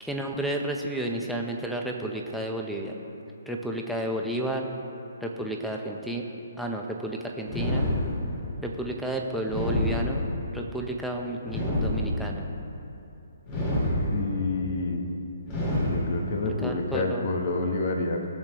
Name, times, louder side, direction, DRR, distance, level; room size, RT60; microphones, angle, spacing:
voice 1, 0.0-2.9 3.5-4.7 5.2-6.2 6.6-7.9 8.6-10.3 10.5-12.5 16.4-17.3, right 1 dB, ahead, 1 dB, 0.9 m, -32 dB
sound 1, 7.5-8.5 9.5-10.5 11.5-12.5 13.5-14.5 15.5-16.5, left 1 dB, 30° left, 2.1 m, -27 dB
voice 2, 14.1-15.0 15.8-18.3, left 3 dB, 50° left, 3 dB, 1.2 m, -28 dB
19.0 x 6.6 x 3.1 m, 2.8 s
hypercardioid pair, 145°, 0 cm